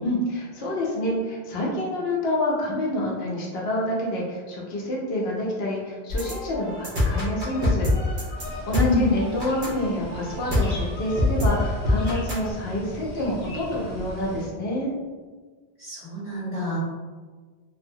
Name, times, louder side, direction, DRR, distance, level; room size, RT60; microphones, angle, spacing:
voice 1, 0.0-8.4 8.6-14.9, left 1 dB, 70° left, -3 dB, 0.8 m, -28 dB
sound 1, 6.1-12.5, left 2 dB, 55° right, 0.9 m, -25 dB
sound 2, 8.4-14.5, right 1 dB, 40° left, 0.7 m, -39 dB
voice 2, 8.7-9.1 15.8-16.8, left 3 dB, 35° right, -11 dB, 1.4 m, -26 dB
2.7 x 2.1 x 2.6 m, 1.5 s
omnidirectional pair, 1.1 m